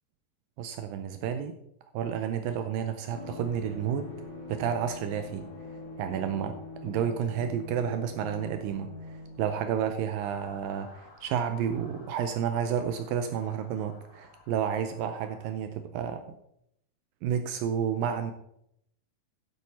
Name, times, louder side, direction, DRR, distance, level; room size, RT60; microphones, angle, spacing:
voice 1, 0.6-1.6 1.9-4.1 4.5-5.4 6.0-6.6 6.8-16.2 17.2-18.3, right 8 dB, 80° right, 8 dB, 2.1 m, -31 dB
sound 1, 3.1-11.6 11.8-11.9, left 3 dB, 40° left, 2.1 m, -44 dB
Motor vehicle (road) / Siren, 10.2-15.5, left 3 dB, 60° left, 4.0 m, -55 dB
9.6 x 8.0 x 4.2 m, 0.75 s
omnidirectional pair, 4.5 m